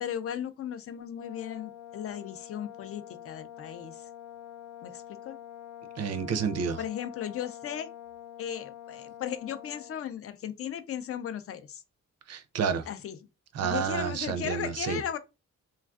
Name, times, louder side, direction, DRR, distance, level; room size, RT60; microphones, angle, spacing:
voice 1, 0.0-4.1 4.8-5.4 6.8-7.9 8.4-11.8 12.9-13.2 13.6-15.2, left 9 dB, 50° left, 0.4 m, -36 dB
Brass instrument, 1.1-10.0, left 11 dB, 85° left, 0.8 m, -46 dB
voice 2, 6.0-6.8 12.3-12.9 13.5-15.0, right 6 dB, 55° right, 0.4 m, -30 dB
3.2 x 2.3 x 2.3 m
wide cardioid pair, 145°, 30 cm